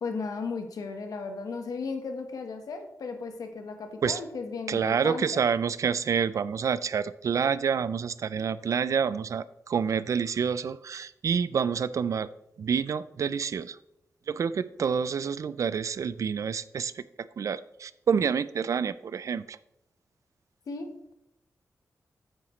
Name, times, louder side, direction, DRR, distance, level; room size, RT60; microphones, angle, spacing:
voice 1, 0.0-5.4 20.7-21.2, left 4 dB, 85° left, 6 dB, 1.2 m, -35 dB
voice 2, 4.7-12.3 12.6-13.8 14.3-17.0 17.4-19.6, right 6 dB, 60° right, 17 dB, 0.4 m, -28 dB
8.8 x 8.6 x 3.1 m, 0.83 s
wide cardioid pair, 155°, 6 cm